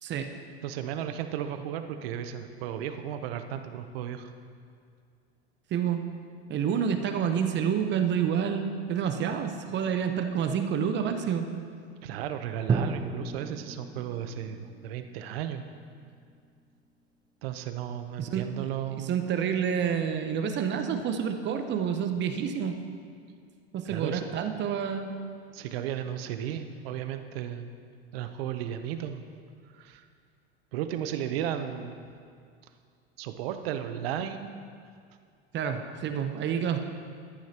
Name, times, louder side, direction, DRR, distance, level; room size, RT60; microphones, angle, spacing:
voice 1, 0.6-4.3 12.0-15.7 17.4-19.1 23.8-24.3 25.5-27.7 28.1-29.2 29.7-30.1 30.7-32.0 33.2-34.5, right 10 dB, 65° right, 8 dB, 0.9 m, -34 dB
voice 2, 5.7-6.1 6.5-11.5 18.2-18.4 18.9-22.8 23.7-25.2 35.5-36.8, right 7 dB, 35° right, 7 dB, 1.0 m, -28 dB
Drum, 12.7-16.5, right 4 dB, 15° right, 0.4 m, -34 dB
14.5 x 10.5 x 3.0 m, 2.2 s
hypercardioid pair, 100°, 32 cm